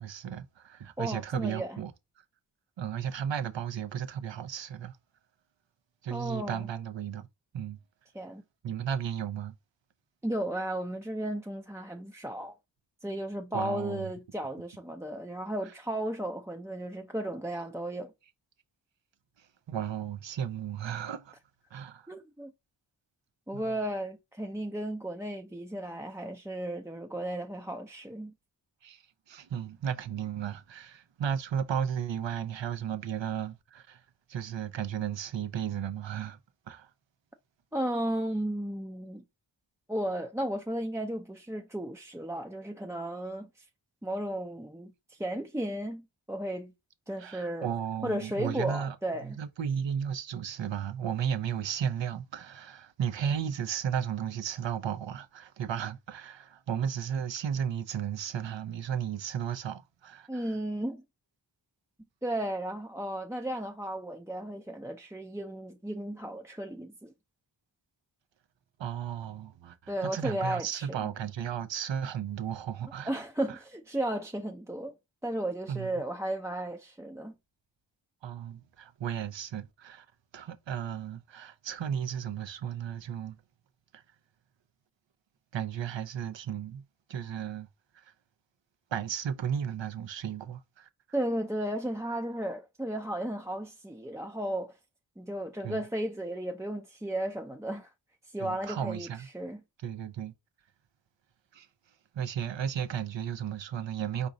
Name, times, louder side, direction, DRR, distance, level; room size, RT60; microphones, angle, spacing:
voice 1, 0.0-1.9 2.8-5.0 6.0-7.3 7.5-7.8 8.6-9.5 13.5-14.1 19.7-21.3 21.7-22.1 23.5-23.7 28.8-29.0 29.3-34.0 34.3-36.4 36.7-36.9 47.2-49.0 49.2-60.5 68.8-73.1 75.7-75.9 78.2-80.1 80.3-83.4 83.9-84.0 85.5-86.8 87.1-87.7 87.9-88.0 88.9-90.9 95.6-95.8 98.4-99.3 99.8-100.3 101.5-101.7 102.1-104.3, right 8 dB, 75° right, 0.7 m, -34 dB
voice 2, 1.0-1.8 6.1-6.7 8.1-8.4 10.2-12.5 13.0-18.1 22.1-22.5 23.5-28.3 37.7-39.2 39.9-43.7 44.0-46.7 47.1-47.7 48.0-49.4 60.3-61.0 62.2-67.1 69.9-71.1 73.0-74.9 75.2-77.3 91.1-94.8 95.2-97.9 98.3-99.6, right 1 dB, 5° right, 0.4 m, -34 dB
4.7 x 2.7 x 3.9 m
wide cardioid pair, 60°, 44 cm